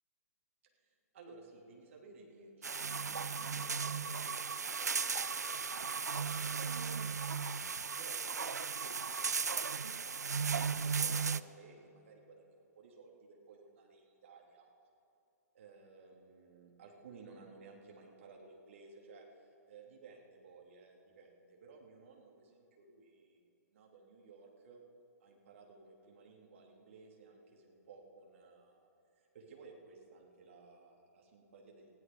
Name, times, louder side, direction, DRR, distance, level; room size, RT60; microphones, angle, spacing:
voice 1, 0.6-7.4 8.0-14.7 15.5-24.8 25.2-28.9 29.1-31.9, right 4 dB, 50° right, 0 dB, 2.7 m, -57 dB
sound 1, 2.6-11.4, right 5 dB, 75° right, 0.4 m, -36 dB
20.0 x 15.0 x 3.7 m, 2.8 s
figure-of-eight pair, 120°, 9 cm